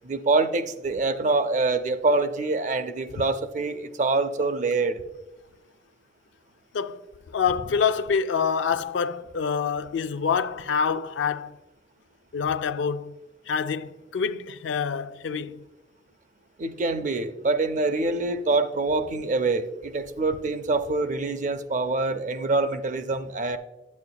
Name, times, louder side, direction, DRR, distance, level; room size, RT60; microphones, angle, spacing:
voice 1, 0.0-5.0 16.6-23.6, right 3 dB, 45° right, 0.5 m, -25 dB
voice 2, 7.3-11.6 12.3-13.1 13.5-15.6, left 6 dB, 85° left, 0.4 m, -26 dB
9.7 x 8.4 x 2.2 m
head